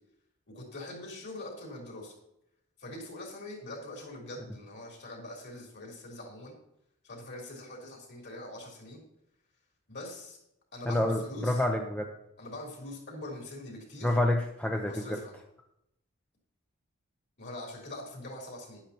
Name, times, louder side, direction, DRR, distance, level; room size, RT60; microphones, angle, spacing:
voice 1, 0.5-2.1 2.8-6.5 7.0-9.0 9.9-10.4 10.7-11.6 12.4-14.2 14.8-15.3 17.4-18.8, left 1 dB, 50° left, -1 dB, 3.5 m, -43 dB
voice 2, 10.9-12.1 14.0-15.2, left 1 dB, 5° left, 2 dB, 0.7 m, -28 dB
11.5 x 10.5 x 2.9 m, 0.79 s
head